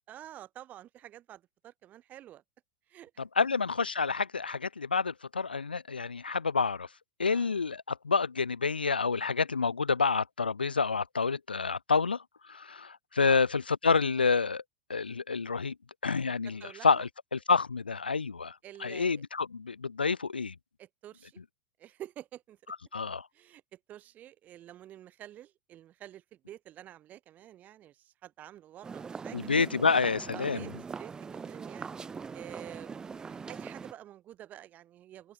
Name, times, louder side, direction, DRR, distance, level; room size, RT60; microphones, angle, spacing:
voice 1, 0.1-2.4 2.9-3.1 7.2-7.6 13.2-13.4 16.6-17.1 18.6-19.2 20.8-21.4 21.8-22.6 23.3-29.5 30.3-31.9 32.3-35.3, right 12 dB, 30° right, 3.2 m, -49 dB
voice 2, 3.2-6.9 7.2-12.2 12.5-14.6 14.9-15.7 16.0-18.6 18.8-20.5 22.9-23.3 29.3-30.7, left 5 dB, 85° left, 0.4 m, -28 dB
sound 1, 28.8-33.9, right 5 dB, 15° right, 0.4 m, -42 dB
open air
figure-of-eight pair, 90°, 5 cm